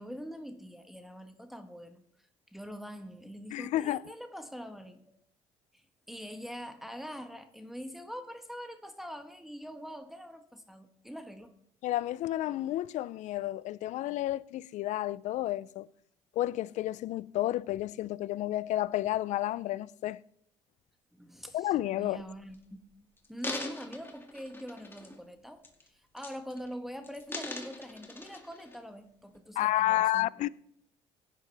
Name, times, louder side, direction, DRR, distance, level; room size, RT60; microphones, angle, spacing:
voice 1, 0.0-2.0 2.5-5.0 6.1-11.5 21.1-30.5, equal, ahead, 1.3 m, -44 dB
voice 2, 3.5-4.0 11.8-15.9 16.4-20.2 21.5-22.2 29.6-30.5, left 14 dB, 65° left, 0.5 m, -31 dB
sound 1, 22.2-22.6 23.2-25.3 25.6-25.9 26.2-26.7 27.0-28.8 29.3-29.4, left 2 dB, 15° left, 2.3 m, -42 dB
17.0 x 10.0 x 3.4 m
supercardioid pair, 80°, 13 cm